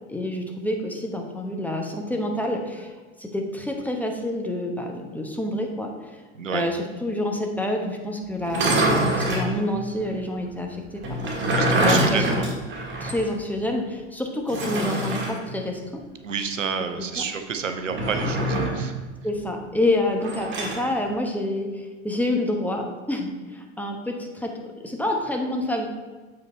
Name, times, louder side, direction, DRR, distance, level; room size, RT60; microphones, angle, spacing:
voice 1, 0.1-2.9 3.2-5.9 6.5-8.8 9.1-11.3 11.8-12.4 13.0-16.0 17.0-17.2 19.2-25.9, left 1 dB, 5° left, 2 dB, 1.0 m, -28 dB
sound 1, 8.4-9.5 11.0-13.3 13.6-13.7 14.5-15.4 17.9-18.8 20.2-20.8, right 1 dB, 30° right, 1.6 m, -24 dB
voice 2, 11.5-12.4 16.2-19.0, right 6 dB, 90° right, 7 dB, 0.6 m, -29 dB
7.8 x 4.2 x 4.3 m, 1.3 s
figure-of-eight pair, 75°, 37 cm